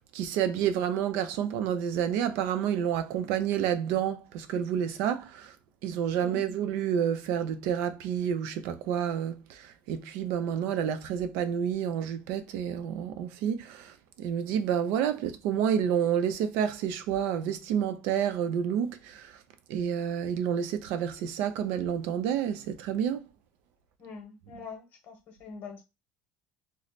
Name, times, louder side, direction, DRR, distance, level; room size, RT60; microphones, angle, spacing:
voice 1, 0.1-5.5 5.8-19.3 19.7-23.3 24.5-24.6, right 9 dB, 75° right, 0.5 m, -29 dB
voice 2, 6.1-6.5 24.0-25.8, left 5 dB, 45° left, 1.0 m, -44 dB
3.1 x 2.0 x 4.0 m
cardioid pair, 170°, 4 cm